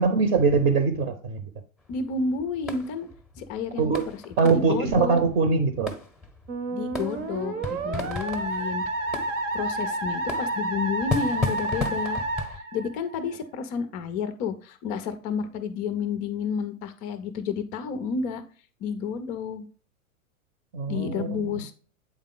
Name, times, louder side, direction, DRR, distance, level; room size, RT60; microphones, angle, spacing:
voice 1, 0.0-1.4 3.8-4.1 4.4-5.9 20.7-21.6, right 4 dB, 45° right, 9 dB, 0.9 m, -22 dB
sound 1, 1.8-12.6, left 3 dB, ahead, 0.7 m, -36 dB
voice 2, 1.9-3.1 3.4-5.3 6.7-8.8 9.5-12.2 12.5-18.4 18.8-19.7 20.9-21.7, left 5 dB, 20° left, 10 dB, 0.3 m, -31 dB
Musical instrument, 6.5-13.4, right 2 dB, 65° right, 1.1 m, -30 dB
8.3 x 3.6 x 3.7 m, 0.40 s
figure-of-eight pair, 100°, 42 cm